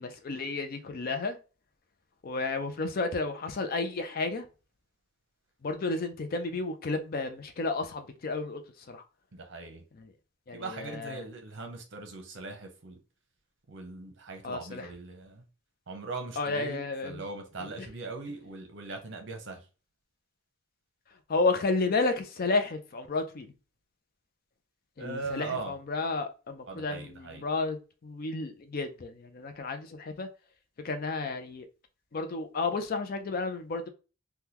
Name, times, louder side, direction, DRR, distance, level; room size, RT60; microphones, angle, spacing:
voice 1, 0.0-1.4 2.2-4.4 5.6-8.6 8.9-9.0 10.5-11.2 14.4-14.9 16.4-17.2 21.3-23.5 25.0-27.8 28.0-30.3 30.8-31.7 32.1-33.9, left 3 dB, 45° left, 0.4 m, -32 dB
voice 2, 9.3-9.8 10.5-13.0 13.7-15.4 15.9-19.7 25.0-25.7 26.7-27.4, right 3 dB, 60° right, 0.8 m, -40 dB
3.6 x 2.2 x 2.8 m
head